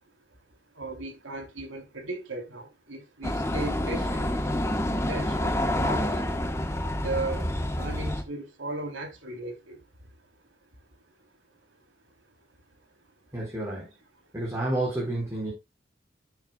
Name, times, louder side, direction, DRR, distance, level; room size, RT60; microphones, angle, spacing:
voice 1, 0.7-4.4 4.9-6.4 6.8-10.1 11.2-11.3, right 2 dB, 90° right, 3.5 m, -37 dB
sound 1, 3.2-8.2, left 1 dB, 15° left, 1.2 m, -28 dB
voice 2, 13.3-13.9 14.3-15.5, right 1 dB, 15° right, 4.7 m, -30 dB
13.5 x 8.2 x 2.3 m
head